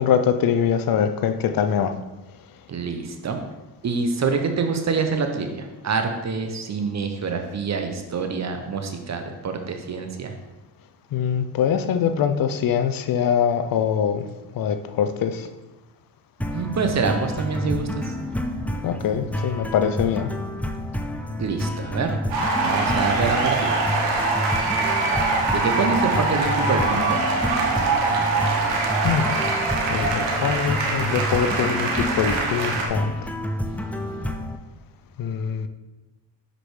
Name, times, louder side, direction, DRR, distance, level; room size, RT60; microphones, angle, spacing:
voice 1, 0.0-2.0 11.1-14.3 14.5-15.5 18.8-20.3 29.0-29.3 29.9-33.3 35.2-35.7, left 8 dB, 50° left, 9 dB, 0.6 m, -23 dB
voice 2, 2.7-3.4 3.8-10.3 16.4-17.9 21.4-22.2 22.6-23.8 25.5-27.3, right 5 dB, 40° right, 5 dB, 0.8 m, -26 dB
sound 1, 16.4-34.6, left 1 dB, 5° left, 0.3 m, -29 dB
sound 2, 22.3-32.9, right 3 dB, 80° right, 1.2 m, -23 dB
5.8 x 5.1 x 3.2 m, 1.1 s
supercardioid pair, 75°, 44 cm